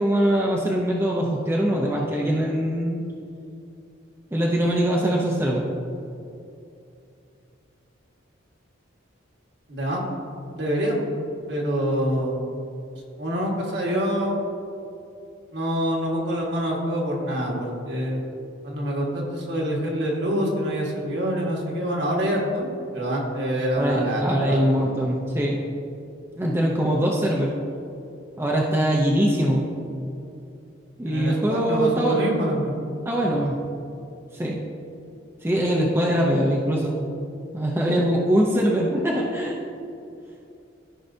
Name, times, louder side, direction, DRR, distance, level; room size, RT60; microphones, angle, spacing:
voice 1, 0.0-3.0 4.3-5.7 23.7-25.6 26.4-27.5 28.4-29.7 31.0-32.2 33.0-33.6 34.3-34.6 35.4-36.9 37.5-39.6, right 1 dB, 10° right, -3 dB, 0.6 m, -22 dB
voice 2, 9.7-10.0 10.5-11.0 11.5-12.5 13.2-14.3 15.5-18.2 18.6-24.9 31.0-32.7, equal, 55° right, -2 dB, 1.5 m, -26 dB
13.5 x 5.5 x 2.7 m, 2.6 s
head